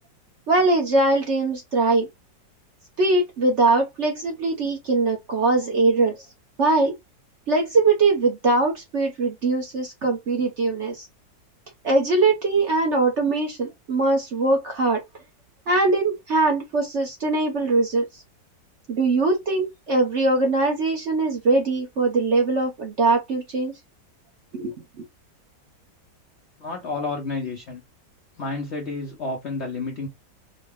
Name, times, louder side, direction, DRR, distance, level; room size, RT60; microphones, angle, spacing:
voice 1, 0.5-2.1 3.0-6.2 6.6-6.9 7.5-11.1 11.8-15.0 15.7-18.0 18.9-23.7 24.5-24.7, right 3 dB, 50° right, 1.0 m, -21 dB
voice 2, 26.6-27.8 28.4-30.1, left 3 dB, 60° left, 0.7 m, -30 dB
4.0 x 2.2 x 3.3 m
omnidirectional pair, 2.0 m